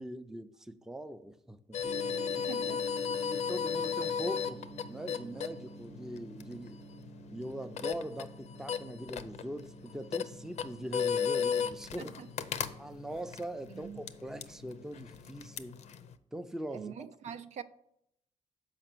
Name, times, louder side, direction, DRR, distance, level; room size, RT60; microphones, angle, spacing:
voice 1, 0.0-1.8 3.3-4.6 4.9-6.8 7.3-12.1 12.8-15.8 16.3-17.1, right 1 dB, 5° right, 0.5 m, -41 dB
sound 1, 1.7-16.1, left 7 dB, 65° left, 0.5 m, -36 dB
Gong, 1.8-15.6, right 3 dB, 45° right, 0.7 m, -50 dB
voice 2, 2.5-2.9 13.7-14.0 16.7-17.6, right 8 dB, 70° right, 0.5 m, -43 dB
6.4 x 4.9 x 6.0 m
cardioid pair, 90°, 12 cm